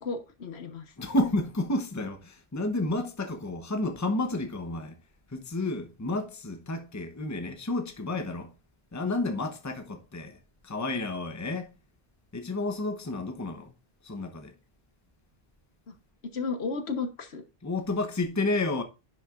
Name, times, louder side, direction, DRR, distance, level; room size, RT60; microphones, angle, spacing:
voice 1, 0.0-0.9 15.9-16.0 16.3-17.4, left 4 dB, 75° left, 1.4 m, -33 dB
voice 2, 1.0-4.9 5.3-8.5 8.9-10.4 10.6-11.7 12.3-13.7 14.0-14.5 17.6-18.8, left 2 dB, 15° left, 0.9 m, -31 dB
10.5 x 6.2 x 2.5 m
omnidirectional pair, 1.1 m